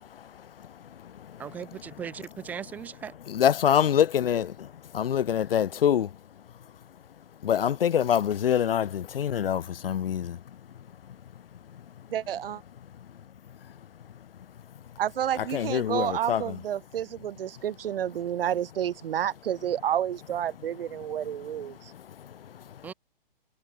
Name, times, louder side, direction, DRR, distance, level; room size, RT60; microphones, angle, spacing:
voice 1, 0.1-1.4 3.3-6.1 7.4-10.4 15.4-16.6 21.3-22.9, left 9 dB, 75° left, 1.2 m, -26 dB
voice 2, 1.4-3.1 22.8-22.9, right 8 dB, 5° right, 0.4 m, -38 dB
voice 3, 12.1-12.6 15.0-21.8, right 10 dB, 75° right, 0.8 m, -30 dB
hypercardioid pair, 150°, 29 cm